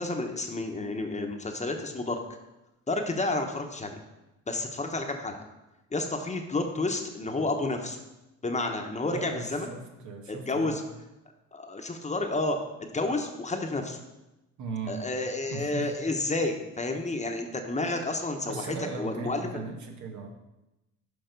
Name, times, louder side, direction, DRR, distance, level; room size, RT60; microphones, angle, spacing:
voice 1, 0.0-2.2 2.9-4.0 4.5-5.4 5.9-8.0 8.4-9.7 10.3-10.8 11.5-14.0 14.9-19.6, left 2 dB, 25° left, 4 dB, 1.0 m, -30 dB
voice 2, 9.1-10.8 14.6-15.0 15.5-15.9 18.4-20.3, right 4 dB, 75° right, 3 dB, 1.3 m, -37 dB
6.8 x 5.2 x 5.3 m, 0.97 s
cardioid pair, 90°, 30 cm